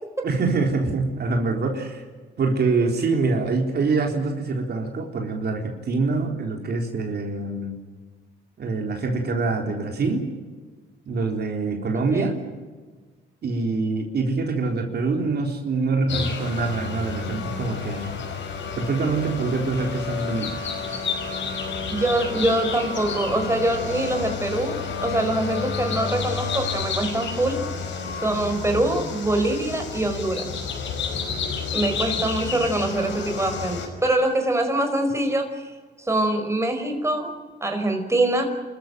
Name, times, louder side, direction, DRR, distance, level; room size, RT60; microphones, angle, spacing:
voice 1, 0.2-2.0 2.4-7.8 8.6-10.3 11.1-12.4 13.4-18.2 18.8-20.6, right 3 dB, 55° right, 2 dB, 4.0 m, -25 dB
voice 2, 11.9-12.3 21.9-27.6 28.1-30.6 31.7-35.6 36.0-38.5, right 1 dB, 15° right, 5 dB, 5.1 m, -24 dB
sound 1, 16.1-33.9, left 5 dB, 70° left, 5.7 m, -30 dB
28.5 x 14.0 x 9.1 m, 1.4 s
cardioid pair, 90°, 20 cm